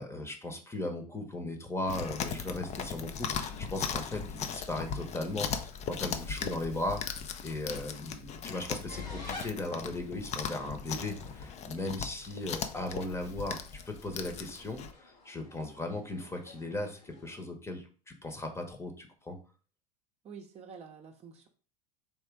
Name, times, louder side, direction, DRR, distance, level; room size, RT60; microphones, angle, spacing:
voice 1, 0.0-19.4, left 2 dB, 15° left, 5 dB, 1.0 m, -37 dB
Chewing mastication, 1.9-14.9, left 6 dB, 35° left, 0.5 m, -38 dB
sound 1, 8.9-17.4, left 4 dB, 85° left, 1.4 m, -50 dB
voice 2, 20.2-21.5, right 6 dB, 30° right, 3 dB, 0.7 m, -48 dB
3.6 x 3.1 x 4.5 m, 0.37 s
hypercardioid pair, 85°, 20 cm